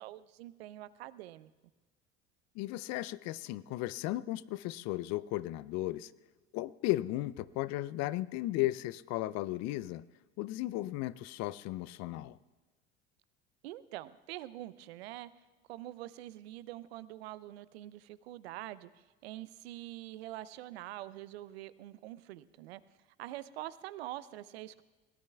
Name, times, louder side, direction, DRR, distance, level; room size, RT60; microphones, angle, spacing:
voice 1, 0.0-1.5 13.6-15.3 15.7-22.8 23.2-24.8, right 15 dB, 80° right, 17 dB, 0.6 m, -45 dB
voice 2, 2.6-6.1 6.5-10.0 10.4-12.4, left 16 dB, 55° left, 18 dB, 0.5 m, -35 dB
22.5 x 18.0 x 2.3 m, 1.2 s
hypercardioid pair, 65°, 31 cm